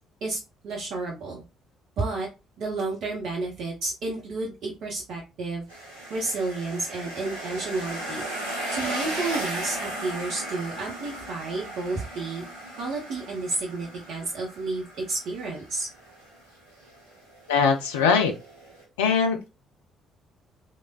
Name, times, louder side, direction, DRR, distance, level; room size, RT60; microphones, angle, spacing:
voice 1, 0.6-1.4 2.0-2.3 2.6-5.7 6.1-8.2 8.7-12.4 12.8-15.9, right 3 dB, 55° right, 0.7 m, -31 dB
sound 1, 5.7-18.8, right 1 dB, 85° right, 0.9 m, -36 dB
voice 2, 17.5-18.3 19.0-19.5, left 5 dB, 70° left, 0.3 m, -21 dB
3.2 x 2.0 x 2.2 m
figure-of-eight pair, 45°, 0 cm